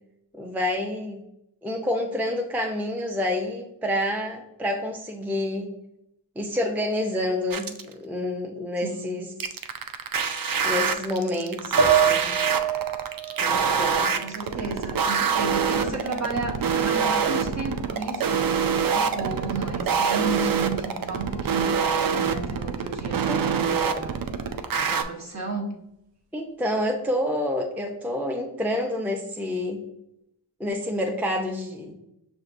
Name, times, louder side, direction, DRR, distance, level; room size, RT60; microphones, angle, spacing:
voice 1, 0.3-1.2 1.6-5.7 6.4-9.3 10.6-12.3 13.4-14.1 23.3-23.4 26.3-29.9 30.6-31.9, left 1 dB, 5° right, 2 dB, 0.5 m, -28 dB
sound 1, 7.5-7.9 9.4-25.0, right 6 dB, 55° right, 0.5 m, -25 dB
voice 2, 8.8-9.2 14.2-18.5 18.9-24.2 24.7-25.7, right 2 dB, 40° right, 0 dB, 1.0 m, -33 dB
sound 2, 11.8-15.2 15.6-16.6, right 8 dB, 90° right, 0.7 m, -27 dB
5.6 x 2.6 x 2.5 m, 0.84 s
cardioid pair, 45°, 42 cm